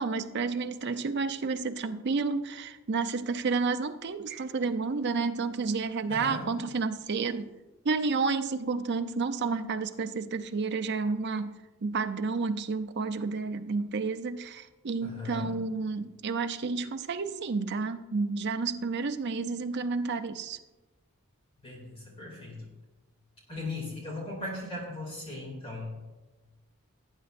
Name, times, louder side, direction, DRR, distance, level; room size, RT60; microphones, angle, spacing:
voice 1, 0.0-7.5 7.8-11.5 11.8-20.6, right 4 dB, 50° right, 8 dB, 0.5 m, -30 dB
voice 2, 6.1-6.5 15.0-15.5 21.6-22.6 23.5-25.9, left 2 dB, 25° left, -2 dB, 2.7 m, -38 dB
18.0 x 9.1 x 2.6 m, 1.2 s
head